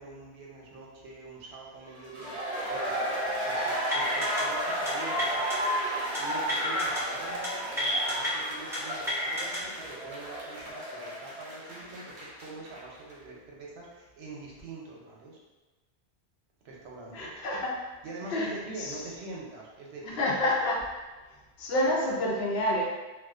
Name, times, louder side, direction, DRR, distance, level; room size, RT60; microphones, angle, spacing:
voice 1, 0.0-2.4 2.7-5.9 6.2-15.4 16.6-17.3 18.0-20.2, right 2 dB, 90° right, -3 dB, 0.9 m, -44 dB
sound 1, 2.0-12.8 13.1-13.2, equal, 55° right, 0.6 m, -33 dB
sound 2, 3.9-4.4 4.7-4.9 5.2-5.6 6.1-7.0 7.3-7.5 7.8-8.3 8.7-9.6, left 1 dB, 5° right, 0.5 m, -30 dB
voice 2, 17.1-17.8 18.3-18.5 18.8-18.9 20.0-20.9 21.6-22.9, left 1 dB, 75° left, -2 dB, 0.8 m, -28 dB
2.4 x 2.2 x 2.3 m, 1.2 s
omnidirectional pair, 1.1 m